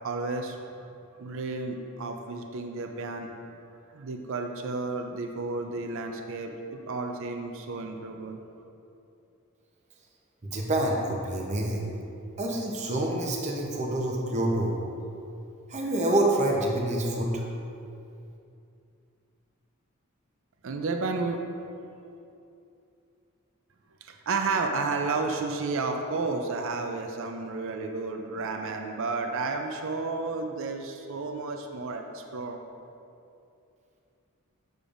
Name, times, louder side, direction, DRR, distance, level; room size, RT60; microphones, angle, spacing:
voice 1, 0.0-0.6 1.2-3.3 3.9-8.4 20.6-21.4 24.1-32.6, right 3 dB, 65° right, 4 dB, 0.4 m, -32 dB
voice 2, 10.5-11.9 12.4-14.8 15.7-17.4, right 1 dB, 30° right, -1 dB, 0.7 m, -27 dB
6.8 x 6.5 x 2.5 m, 2.6 s
head